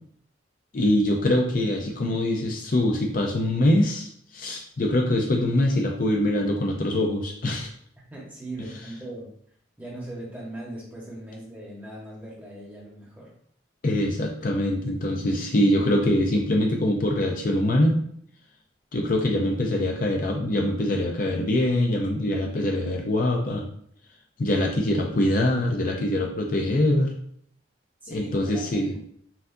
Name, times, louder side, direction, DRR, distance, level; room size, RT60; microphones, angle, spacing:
voice 1, 0.7-7.7 13.8-18.0 18.9-23.7 24.4-27.1 28.1-28.9, left 1 dB, 45° left, 1 dB, 0.5 m, -23 dB
voice 2, 8.1-9.3 9.8-13.3 28.0-28.9, right 1 dB, 10° right, -5 dB, 1.2 m, -39 dB
5.7 x 2.5 x 2.6 m, 0.65 s
head